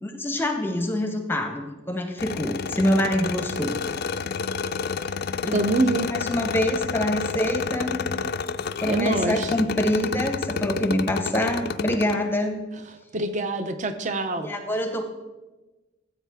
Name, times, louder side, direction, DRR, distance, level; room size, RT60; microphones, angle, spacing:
voice 1, 0.0-3.8 5.4-5.6 6.1-8.0 8.8-12.6 14.4-15.0, left 1 dB, 10° left, 6 dB, 0.7 m, -25 dB
sound 1, 2.2-12.2, left 5 dB, 50° left, 0.3 m, -30 dB
voice 2, 5.5-6.1 8.8-9.5 13.1-14.5, right 2 dB, 35° right, 10 dB, 0.6 m, -25 dB
14.5 x 8.2 x 3.5 m, 1.2 s
head